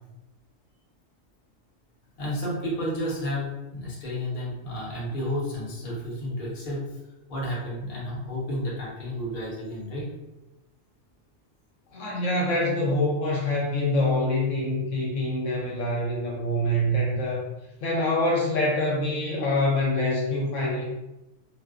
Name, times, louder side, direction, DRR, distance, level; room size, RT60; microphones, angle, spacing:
voice 1, 2.2-6.8 7.3-10.1, equal, 45° left, -5 dB, 0.8 m, -31 dB
voice 2, 11.9-17.4 17.8-20.8, left 1 dB, 75° left, -3 dB, 1.0 m, -25 dB
2.5 x 2.2 x 2.3 m, 0.98 s
omnidirectional pair, 1.3 m